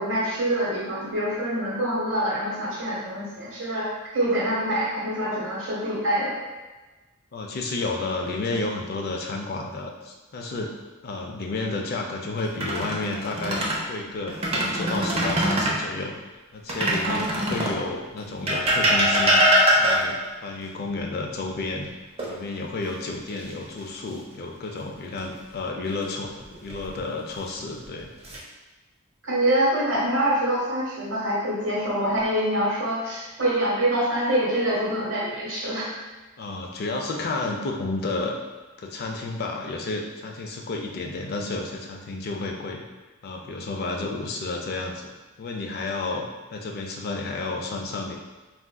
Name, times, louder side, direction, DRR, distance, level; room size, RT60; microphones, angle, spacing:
voice 1, 0.0-6.4 17.0-17.6 29.2-35.9, right 1 dB, 75° right, -6 dB, 1.1 m, -25 dB
voice 2, 7.3-10.7 11.0-16.1 16.5-21.9 22.3-26.3 26.6-28.1 36.4-38.4 38.8-42.8 43.2-48.2, left 3 dB, 50° left, 1 dB, 0.4 m, -31 dB
sound 1, 12.4-13.8 14.3-15.8 16.7-17.8 18.5-20.3 22.2-22.9 23.3-23.5 26.4-27.0 27.7-28.4, equal, 30° right, 0.5 m, -23 dB
3.8 x 2.4 x 2.2 m, 1.2 s
head